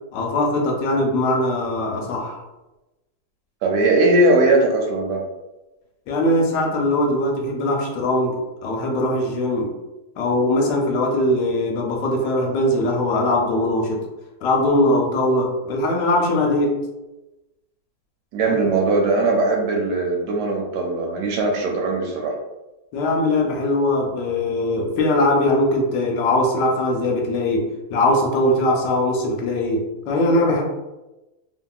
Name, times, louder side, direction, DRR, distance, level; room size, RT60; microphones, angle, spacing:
voice 1, 0.1-2.4 6.1-9.7 10.2-14.1 14.4-16.8 18.5-18.6 22.9-30.6, left 1 dB, 80° left, 1 dB, 1.2 m, -21 dB
voice 2, 3.6-5.2 18.3-22.3, right 2 dB, 75° right, 0 dB, 1.1 m, -19 dB
2.7 x 2.7 x 2.2 m, 1.0 s
omnidirectional pair, 2.0 m